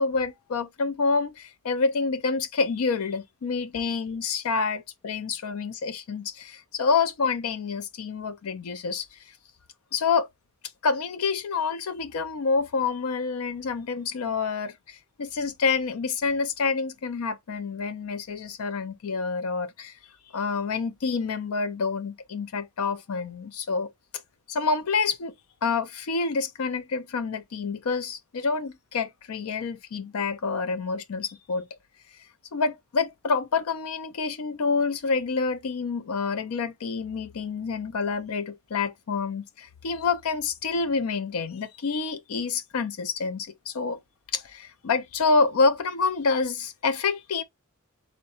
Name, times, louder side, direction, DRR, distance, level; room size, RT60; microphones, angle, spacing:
voice 1, 0.0-9.2 9.9-10.3 10.8-20.0 20.3-23.9 24.5-25.3 25.6-31.7 32.5-44.0 44.3-47.4, left 4 dB, 85° left, 0.5 m, -27 dB
3.6 x 2.1 x 4.1 m
head